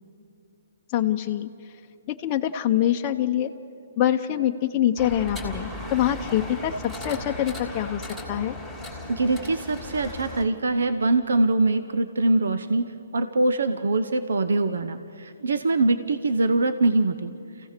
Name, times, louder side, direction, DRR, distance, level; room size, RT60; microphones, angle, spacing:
voice 1, 0.9-1.5 2.1-3.5 4.0-8.0 8.3-8.6, left 11 dB, 25° left, 3 dB, 0.8 m, -24 dB
sound 1, 5.0-10.4, left 1 dB, 10° right, 3.1 m, -36 dB
voice 2, 9.1-17.3, right 2 dB, 85° right, 11 dB, 0.9 m, -23 dB
28.0 x 16.0 x 6.7 m, 2.7 s
hypercardioid pair, 160°, 0 cm